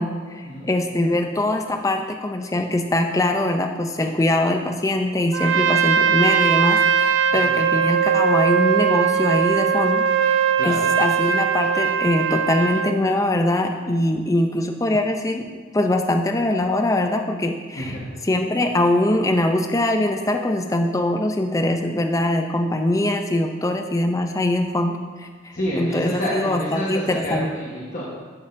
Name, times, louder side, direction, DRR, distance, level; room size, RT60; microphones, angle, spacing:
voice 1, 0.0-15.5 15.7-18.0 18.2-25.3 25.8-27.5, left 1 dB, 15° left, 5 dB, 0.4 m, -22 dB
Trumpet, 5.3-13.0, right 7 dB, 65° right, 0.3 m, -20 dB
voice 2, 25.5-28.0, equal, 40° left, -6 dB, 1.2 m, -28 dB
11.0 x 6.4 x 2.6 m, 1.5 s
head